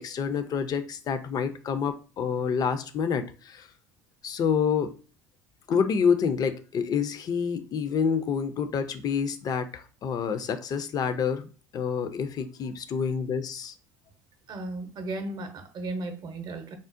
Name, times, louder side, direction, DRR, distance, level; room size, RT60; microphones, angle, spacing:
voice 1, 0.0-3.7 4.2-4.9 5.7-13.7, left 6 dB, 45° left, 0.5 m, -28 dB
voice 2, 14.5-16.8, right 2 dB, 50° right, 0.7 m, -35 dB
3.7 x 2.0 x 2.5 m
hypercardioid pair, 70°, 9 cm